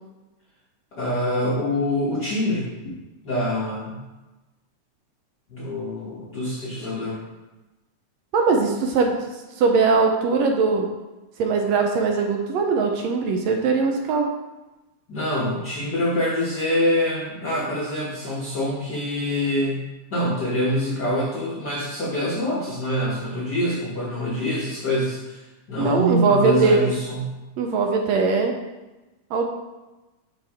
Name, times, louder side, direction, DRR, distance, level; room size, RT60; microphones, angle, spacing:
voice 1, 0.9-2.9 3.2-4.0 5.5-7.2 15.1-19.8 20.1-27.4, left 1 dB, 65° left, -7 dB, 1.0 m, -25 dB
voice 2, 8.3-9.3 9.6-10.9 11.4-14.3 25.8-26.8 27.6-28.6 29.3-29.5, right 4 dB, 75° right, 3 dB, 1.7 m, -20 dB
6.0 x 5.5 x 3.5 m, 1.1 s
omnidirectional pair, 3.5 m